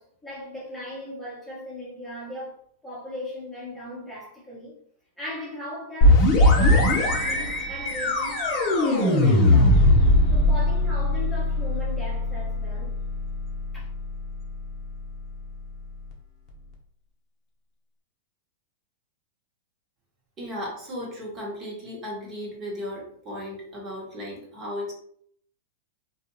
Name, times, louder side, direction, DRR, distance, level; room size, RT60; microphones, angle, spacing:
voice 1, 0.0-2.6 2.8-4.7 5.2-9.8 10.3-12.9 13.7-13.9, left 1 dB, 5° left, 1.0 m, -38 dB
sound 1, 6.0-15.6, left 1 dB, 35° left, 0.8 m, -21 dB
voice 2, 20.4-24.9, left 1 dB, 30° right, 1.2 m, -35 dB
2.4 x 2.3 x 3.1 m
hypercardioid pair, 115°, 0 cm